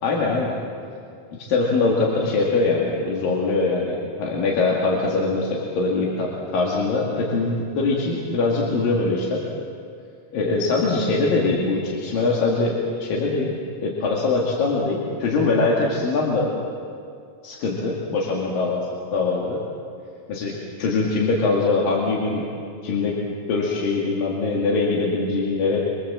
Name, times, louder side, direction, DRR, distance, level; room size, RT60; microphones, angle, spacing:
voice 1, 0.0-0.5 1.5-9.4 10.3-13.5 13.8-16.5 17.4-18.9 19.1-19.6 20.3-22.4 22.8-23.2 23.5-25.8, left 3 dB, 80° left, -3 dB, 4.0 m, -22 dB
26.0 x 25.5 x 7.6 m, 2.4 s
omnidirectional pair, 3.9 m